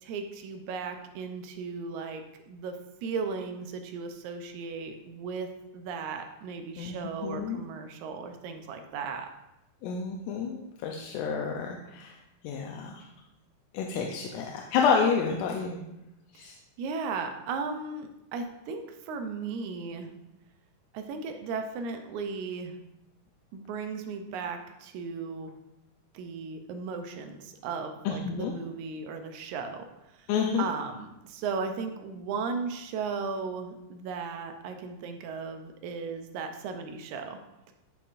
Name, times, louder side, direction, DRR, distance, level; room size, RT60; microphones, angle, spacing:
voice 1, 0.0-2.7 3.0-5.5 5.7-9.3 16.3-16.5 16.8-20.1 20.9-22.8 23.5-25.6 26.1-29.9 30.1-30.3 30.6-37.4, right 5 dB, 80° right, 6 dB, 1.9 m, -36 dB
voice 2, 7.2-7.6 9.8-12.1 12.4-13.0 13.7-15.8 16.4-16.5 28.1-28.5 30.3-30.6, left 6 dB, 85° left, 1 dB, 2.1 m, -29 dB
10.0 x 5.4 x 2.5 m, 0.91 s
omnidirectional pair, 3.7 m